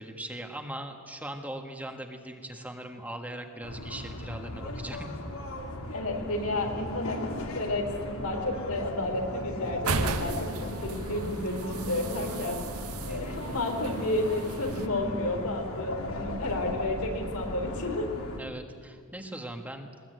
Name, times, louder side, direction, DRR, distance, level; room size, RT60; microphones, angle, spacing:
voice 1, 0.0-5.1 13.1-13.5 18.4-19.9, right 1 dB, 5° right, 4 dB, 1.5 m, -40 dB
sound 1, 3.6-18.4, left 1 dB, 75° left, 2.5 m, -38 dB
voice 2, 5.9-7.2 7.5-12.6 13.1-18.1, left 1 dB, 90° left, 3 dB, 4.1 m, -31 dB
sound 2, 9.8-14.9, right 3 dB, 85° right, 1.6 m, -35 dB
20.5 x 20.5 x 9.2 m, 2.1 s
head